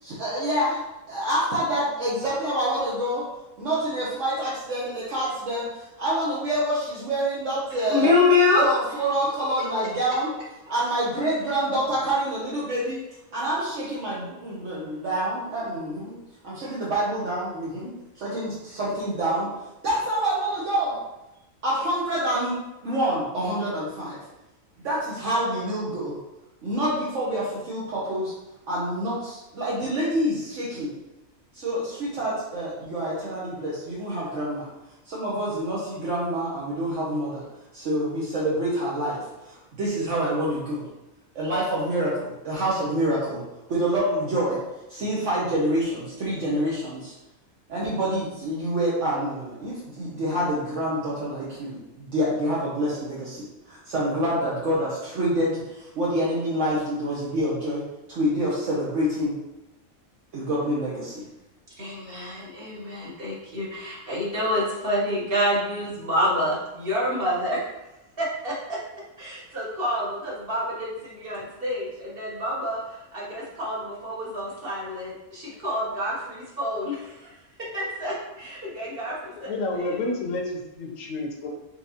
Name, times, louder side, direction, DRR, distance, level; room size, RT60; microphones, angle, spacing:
voice 1, 0.0-3.3 3.6-8.2 8.6-10.3 10.7-13.0 13.3-16.2 16.4-19.5 19.8-21.0 21.6-22.5 22.8-24.2 24.8-26.2 26.6-28.3 28.7-30.9 31.5-34.7 35.1-37.4 37.7-40.9 41.3-43.4 43.7-44.6 44.9-47.1 47.7-59.3 60.3-61.2, right 1 dB, 65° right, -7 dB, 1.2 m, -27 dB
voice 2, 7.9-8.7 61.8-67.6 68.2-68.8 69.2-72.8 73.1-77.3 77.7-79.5, left 2 dB, 45° right, -5 dB, 1.3 m, -27 dB
voice 3, 79.4-81.6, left 2 dB, 75° left, 2 dB, 1.2 m, -30 dB
4.4 x 3.9 x 2.8 m, 0.94 s
omnidirectional pair, 1.4 m